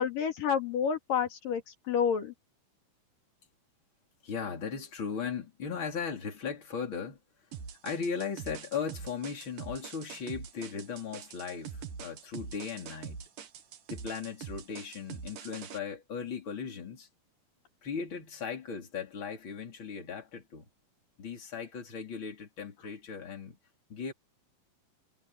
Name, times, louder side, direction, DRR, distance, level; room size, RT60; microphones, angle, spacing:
voice 1, 0.0-2.3, left 7 dB, 85° left, 4.4 m, -29 dB
voice 2, 4.2-7.2 7.8-13.3 13.9-17.1 17.8-20.7 21.2-23.6 23.9-24.1, left 6 dB, 35° left, 4.5 m, -37 dB
sound 1, 7.5-15.8, right 7 dB, 80° right, 3.4 m, -44 dB
omnidirectional pair, 3.8 m